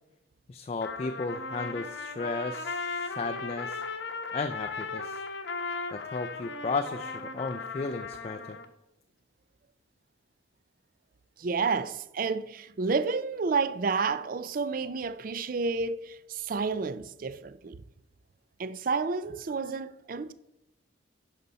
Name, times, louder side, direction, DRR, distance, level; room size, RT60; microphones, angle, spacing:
voice 1, 0.5-3.8 4.3-5.2 5.9-8.6, left 3 dB, 30° left, 0.3 m, -34 dB
Trumpet, 0.8-8.7, left 4 dB, 65° left, 0.8 m, -37 dB
voice 2, 11.4-17.8 18.6-20.3, right 4 dB, 45° right, 0.4 m, -30 dB
11.0 x 5.3 x 4.1 m
head